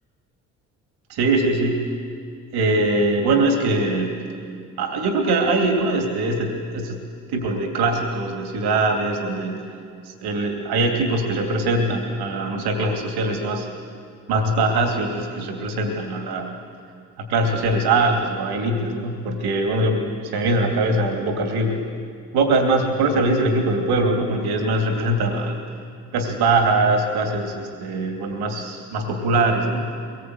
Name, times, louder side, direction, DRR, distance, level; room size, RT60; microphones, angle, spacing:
voice 1, 1.1-1.8 2.5-4.2 4.8-7.0 7.3-9.6 10.0-13.7 14.3-16.5 17.2-21.8 22.3-25.6 26.1-29.8, right 2 dB, 75° right, 3 dB, 2.9 m, -22 dB
22.5 x 20.0 x 8.2 m, 2.4 s
hypercardioid pair, 50°, 39 cm